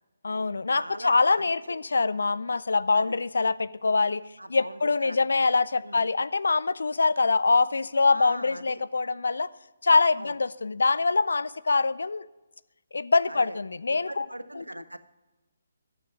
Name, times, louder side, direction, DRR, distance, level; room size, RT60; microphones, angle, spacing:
voice 1, 0.2-4.2 4.5-9.5 9.8-12.2 12.9-14.3 14.6-14.7, left 4 dB, 65° left, 17 dB, 0.3 m, -24 dB
voice 2, 0.8-1.8 2.9-3.2 4.4-5.2 5.8-6.0 8.1-8.8 10.2-10.3 13.3-13.6 13.9-15.0, right 1 dB, 90° right, 13 dB, 0.7 m, -41 dB
9.2 x 7.0 x 5.5 m, 1.1 s
figure-of-eight pair, 140°, 0 cm